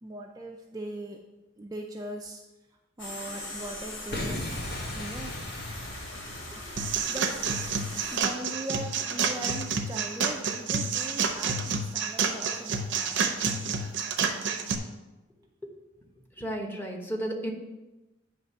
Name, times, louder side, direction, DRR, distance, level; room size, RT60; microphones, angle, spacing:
voice 1, 0.0-1.2 1.6-2.4 3.0-4.4 4.9-5.3 7.1-7.3 8.1-13.8, right 1 dB, 20° right, 1 dB, 0.4 m, -40 dB
sound 1, 3.0-8.2, left 1 dB, 80° left, 1.8 m, -41 dB
Boom, 4.1-7.1, left 1 dB, 55° left, 1.2 m, -37 dB
sound 2, 6.8-14.8, right 5 dB, 65° right, 0.7 m, -29 dB
voice 2, 16.4-17.5, right 1 dB, 10° left, 1 dB, 1.0 m, -33 dB
9.0 x 3.3 x 5.5 m, 1.0 s
head